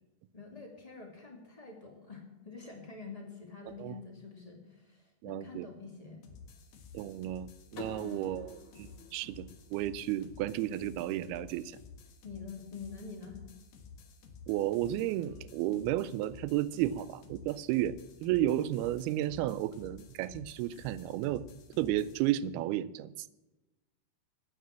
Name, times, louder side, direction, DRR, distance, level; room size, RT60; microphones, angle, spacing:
voice 1, 0.3-6.3 8.0-8.2 12.2-13.4, left 4 dB, 15° left, 2 dB, 1.5 m, -47 dB
voice 2, 5.2-5.7 6.9-11.7 14.5-18.0 18.2-21.4 21.8-23.1, right 13 dB, 85° right, 15 dB, 2.5 m, -32 dB
sound 1, 6.2-22.2, left 5 dB, 85° left, 3.5 m, -53 dB
sound 2, 7.8-10.6, left 5 dB, 60° left, 3.5 m, -49 dB
12.0 x 9.3 x 7.5 m, 1.0 s
omnidirectional pair, 4.5 m